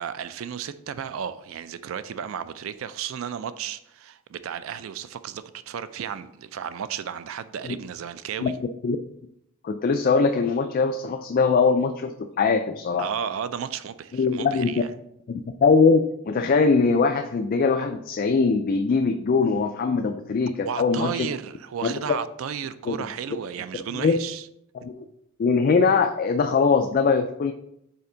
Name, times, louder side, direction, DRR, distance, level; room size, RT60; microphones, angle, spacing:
voice 1, 0.0-8.6 13.0-14.9 20.7-24.5, right 8 dB, 70° right, 0.3 m, -33 dB
voice 2, 9.6-13.1 14.1-14.7 15.3-21.3 21.8-21.9 22.9-23.0 24.0-24.2 24.8-25.0 25.4-27.5, left 4 dB, 40° left, 0.3 m, -21 dB
5.6 x 4.3 x 3.8 m
head